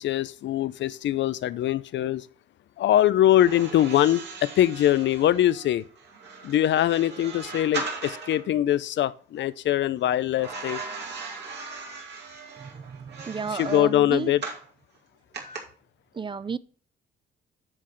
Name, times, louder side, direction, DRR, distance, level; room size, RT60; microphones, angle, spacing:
voice 1, 0.0-2.3 2.8-5.8 6.4-10.8 13.6-14.4, left 12 dB, 65° left, 0.6 m, -23 dB
sound 1, 3.3-8.5 10.4-14.7 15.3-15.6, right 4 dB, 60° right, 2.4 m, -38 dB
voice 2, 12.6-14.3 15.4-15.5 16.1-16.6, right 5 dB, 25° right, 0.4 m, -32 dB
10.0 x 6.3 x 3.1 m
cardioid pair, 90°, 20 cm